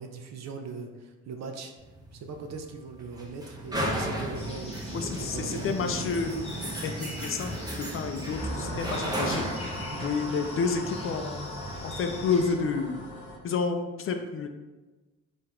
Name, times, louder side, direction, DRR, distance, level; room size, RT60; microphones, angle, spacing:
voice 1, 0.0-1.7 2.1-5.9 8.6-8.9 9.9-10.2, right 4 dB, 60° right, 5 dB, 0.5 m, -40 dB
sound 1, 1.8-12.4, right 1 dB, 15° right, 0.8 m, -35 dB
sound 2, 4.4-12.5, left 2 dB, 20° left, 0.9 m, -45 dB
voice 2, 4.9-6.4 6.8-7.6 7.9-9.4 10.0-11.5 11.8-13.0 13.4-14.5, left 5 dB, 45° left, 6 dB, 0.4 m, -30 dB
sound 3, 8.4-13.4, left 2 dB, 90° left, 1.0 m, -40 dB
3.8 x 2.5 x 4.3 m, 1.2 s
cardioid pair, 90°, 30 cm